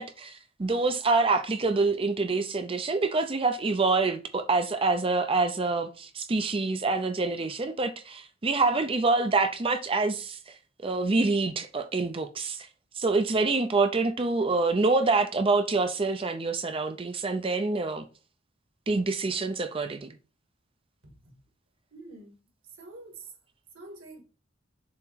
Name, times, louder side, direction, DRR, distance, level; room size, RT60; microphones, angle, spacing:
voice 1, 0.0-10.4 10.8-12.7 13.0-18.0 18.9-20.1, right 3 dB, 30° right, 0.5 m, -26 dB
voice 2, 21.0-21.4 21.9-22.4 22.8-23.3 23.7-24.2, right 2 dB, 85° right, 2.0 m, -46 dB
7.1 x 3.0 x 4.5 m
head